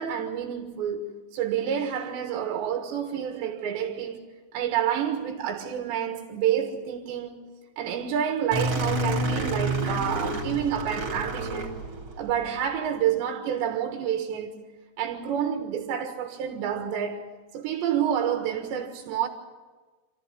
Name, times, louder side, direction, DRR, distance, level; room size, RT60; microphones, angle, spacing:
voice 1, 0.0-4.3 4.5-11.8 12.2-14.6 15.0-17.3 17.5-19.3, right 9 dB, 75° right, 3.6 m, -29 dB
sound 1, 8.5-12.4, right 1 dB, 35° right, 4.0 m, -29 dB
27.5 x 14.5 x 8.5 m
omnidirectional pair, 5.3 m